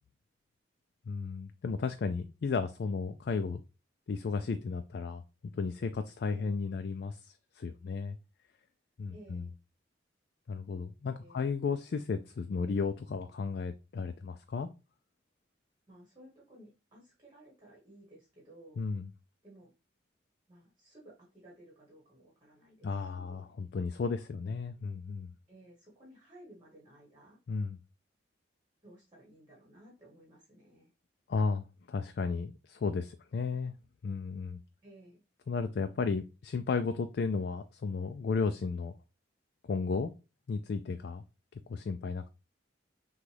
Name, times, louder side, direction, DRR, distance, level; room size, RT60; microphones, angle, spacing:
voice 1, 1.1-3.6 4.1-5.2 5.5-8.2 9.0-9.5 10.5-14.7 18.8-19.1 22.8-25.3 27.5-27.8 31.3-33.7 34.0-34.6 35.5-38.9 39.7-40.1 40.5-41.2 41.7-42.3, left 4 dB, 55° left, 8 dB, 0.3 m, -34 dB
voice 2, 9.1-9.5 11.2-11.4 15.9-18.8 19.4-19.7 20.5-23.4 25.5-27.4 28.8-30.9 34.8-35.2, right 1 dB, 25° right, -4 dB, 1.4 m, -56 dB
6.1 x 2.3 x 3.3 m, 0.30 s
head